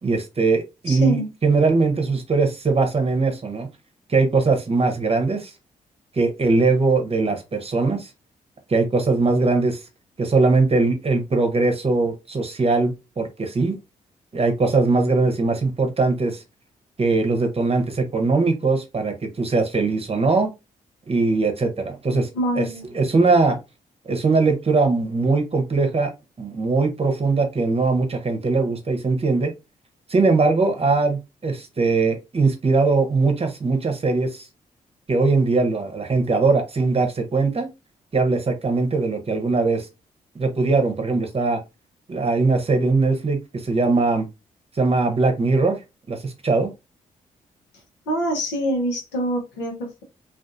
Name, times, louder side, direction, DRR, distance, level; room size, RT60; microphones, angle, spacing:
voice 1, 0.0-3.7 4.1-5.5 6.1-8.1 8.7-9.8 10.2-13.8 14.3-16.4 17.0-20.5 21.1-22.3 22.6-22.7 22.9-23.6 24.1-26.1 26.4-29.5 30.1-34.5 35.1-37.7 38.1-39.9 40.3-41.6 42.1-44.3 44.7-45.8 46.1-46.7, right 3 dB, 35° right, 0.8 m, -21 dB
voice 2, 0.9-1.3 22.3-22.8 48.1-50.0, equal, 85° left, 0.8 m, -25 dB
2.5 x 2.4 x 2.5 m
hypercardioid pair, 40°, 17 cm